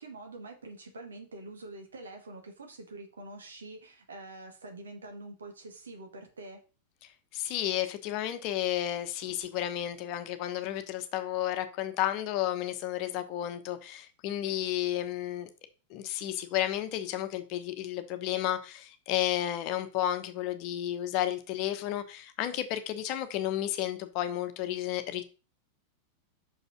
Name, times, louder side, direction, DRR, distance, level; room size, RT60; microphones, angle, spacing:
voice 1, 0.0-6.6, right 2 dB, 70° right, 2.1 m, -45 dB
voice 2, 7.3-15.5 15.9-25.2, left 12 dB, 45° left, 1.1 m, -32 dB
6.0 x 5.4 x 5.7 m
figure-of-eight pair, 90°, 0 cm